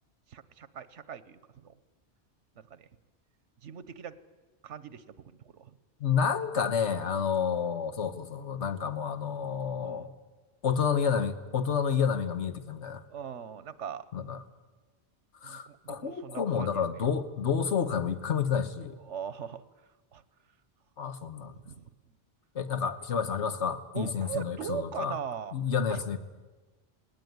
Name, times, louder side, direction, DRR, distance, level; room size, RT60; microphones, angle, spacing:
voice 1, 0.3-1.7 2.7-2.9 3.6-4.1 4.6-5.0 5.5-5.7 6.9-7.0 9.8-10.1 13.1-14.1 15.4-16.8 19.0-19.6 20.1-20.2 21.6-21.9 23.9-25.6 25.9-26.0, right 8 dB, 90° right, 16 dB, 1.3 m, -40 dB
voice 2, 6.0-10.1 10.6-13.0 14.1-14.4 15.4-18.9 21.0-21.5 22.5-25.2 25.5-26.2, left 7 dB, 80° left, 10 dB, 1.6 m, -30 dB
19.0 x 19.0 x 9.5 m, 1.3 s
omnidirectional pair, 1.2 m